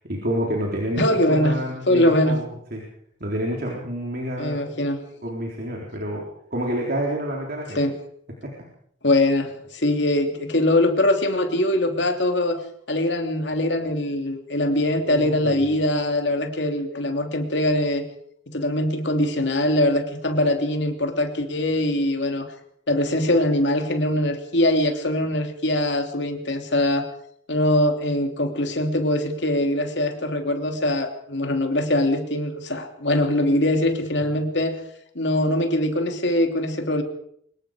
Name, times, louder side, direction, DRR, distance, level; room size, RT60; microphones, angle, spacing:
voice 1, 0.1-2.8 3.2-4.6 5.2-7.8 8.4-8.7 15.1-15.8, equal, 55° right, -2 dB, 4.0 m, -29 dB
voice 2, 1.0-1.6 1.9-2.4 4.4-5.1 7.7-7.9 9.0-12.6 12.9-18.0 18.5-22.5 22.9-27.1 27.5-34.8 35.1-37.0, left 1 dB, 65° left, 5 dB, 3.0 m, -22 dB
24.5 x 21.0 x 5.1 m, 0.67 s
head